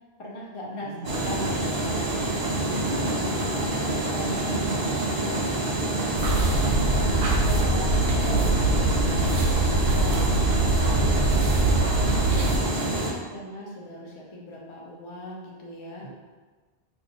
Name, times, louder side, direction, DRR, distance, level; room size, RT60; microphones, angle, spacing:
voice 1, 0.2-2.3 2.6-5.7 6.2-7.2 7.4-8.0 8.2-10.3 10.8-11.2 11.7-11.9 12.3-16.1, equal, 40° left, -3 dB, 0.5 m, -38 dB
voice 2, 0.8-1.2 6.3-7.2 10.7-11.7, right 2 dB, 75° left, -5 dB, 1.1 m, -37 dB
sound 1, 1.0-13.1, right 2 dB, 50° right, 0.6 m, -27 dB
sound 2, 6.2-12.6, right 2 dB, 85° right, 0.9 m, -23 dB
2.7 x 2.3 x 4.2 m, 1.4 s
omnidirectional pair, 1.1 m